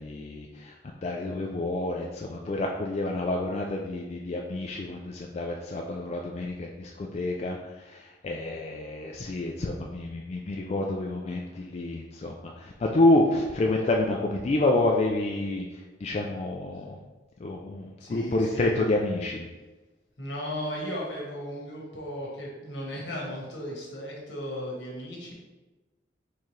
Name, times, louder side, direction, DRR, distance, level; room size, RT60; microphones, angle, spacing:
voice 1, 0.0-17.0 17.4-19.4, left 2 dB, 35° left, 0 dB, 0.3 m, -28 dB
voice 2, 18.0-18.8 20.2-25.3, equal, 70° left, -3 dB, 1.4 m, -36 dB
4.5 x 3.7 x 3.2 m, 1.2 s
head